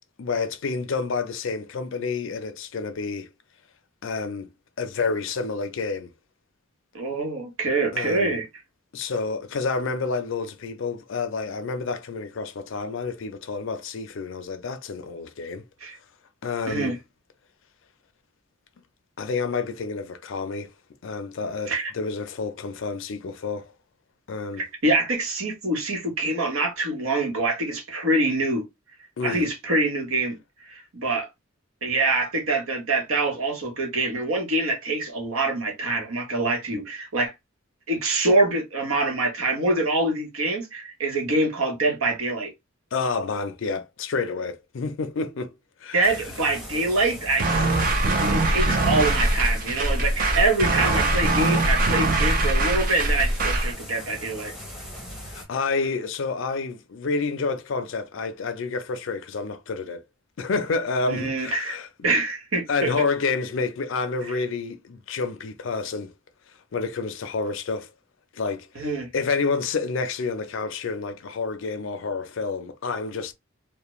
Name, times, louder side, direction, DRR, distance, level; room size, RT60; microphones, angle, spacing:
voice 1, 0.2-3.3 4.0-4.5 4.8-6.1 7.9-8.4 8.9-15.6 16.4-17.0 19.2-20.7 21.0-23.7 24.3-24.6 29.2-29.5 42.9-45.5 45.8-46.1 55.3-60.0 60.4-61.9 62.7-66.1 66.7-67.9 68.3-68.9 69.1-73.3, left 4 dB, 65° left, 0.4 m, -29 dB
voice 2, 6.9-8.5 15.8-16.0 16.7-17.0 21.7-21.9 24.6-28.6 29.2-30.4 30.7-31.3 31.8-37.3 37.9-42.5 45.9-47.6 48.0-54.5 61.1-61.8 62.0-62.9 64.3-64.4 68.7-69.1, right 2 dB, 80° right, 1.0 m, -25 dB
sound 1, 46.0-55.4, equal, ahead, 0.8 m, -40 dB
sound 2, 47.4-53.7, right 2 dB, 45° right, 0.5 m, -22 dB
2.4 x 2.1 x 3.0 m
head